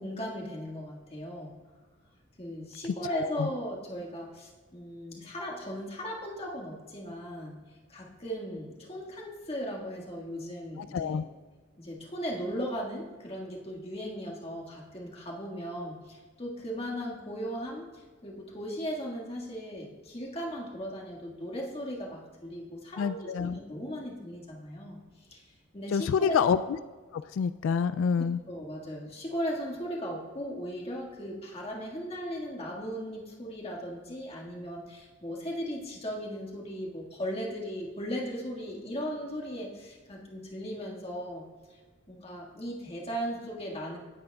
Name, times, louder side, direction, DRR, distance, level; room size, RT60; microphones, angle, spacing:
voice 1, 0.0-1.6 2.4-7.6 7.9-11.2 11.8-25.0 25.3-25.4 25.7-26.4 28.2-41.5 41.7-41.8 42.1-44.0, equal, 30° left, -2 dB, 1.7 m, -37 dB
voice 2, 3.1-3.5 10.8-11.2 23.0-23.6 25.9-26.6 27.1-28.4, left 6 dB, 90° left, 12 dB, 0.3 m, -27 dB
17.5 x 8.6 x 2.3 m, 1.4 s
head